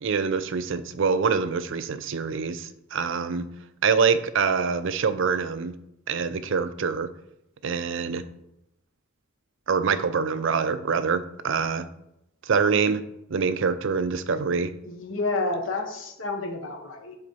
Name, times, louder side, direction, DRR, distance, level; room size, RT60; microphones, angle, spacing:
voice 1, 0.0-3.5 3.8-5.7 6.1-7.1 7.6-8.2 9.7-11.9 12.5-13.0 13.3-14.7, right 5 dB, 65° right, 12 dB, 0.5 m, -25 dB
voice 2, 14.9-17.2, left 3 dB, 70° left, 4 dB, 1.2 m, -30 dB
7.8 x 3.9 x 5.6 m, 0.84 s
head